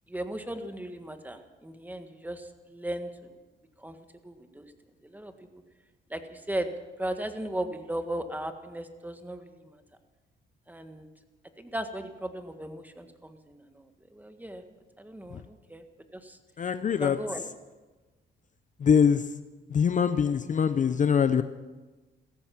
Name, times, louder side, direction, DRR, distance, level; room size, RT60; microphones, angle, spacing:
voice 1, 0.1-3.4 3.8-4.0 4.2-4.7 5.0-5.3 6.1-6.7 7.0-9.8 10.7-11.1 11.6-14.6 15.0-15.8 16.1-16.4 17.0-17.5, right 1 dB, 10° right, 7 dB, 1.6 m, -37 dB
voice 2, 16.6-17.2 18.8-19.2 19.7-21.4, left 7 dB, 40° left, 11 dB, 0.6 m, -23 dB
16.5 x 14.0 x 6.0 m, 1.2 s
cardioid pair, 90°, 20 cm